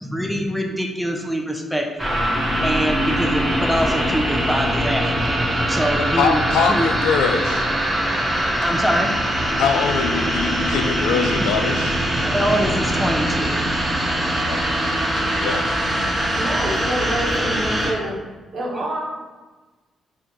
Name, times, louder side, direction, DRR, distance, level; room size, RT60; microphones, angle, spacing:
voice 1, 0.0-2.2 2.6-5.4 5.7-6.4 6.7-6.9 8.6-9.2 12.3-13.6 18.7-18.9, equal, ahead, 2 dB, 0.6 m, -24 dB
sound 1, 2.0-17.9, right 1 dB, 20° right, 1.1 m, -22 dB
voice 2, 6.2-7.6 9.6-11.9 14.4-14.8 15.2-15.7, left 6 dB, 85° left, 6 dB, 0.3 m, -23 dB
voice 3, 16.3-18.2 18.5-19.0, right 1 dB, 65° right, -4 dB, 1.2 m, -26 dB
3.5 x 2.4 x 4.4 m, 1.2 s
supercardioid pair, 55°, 0 cm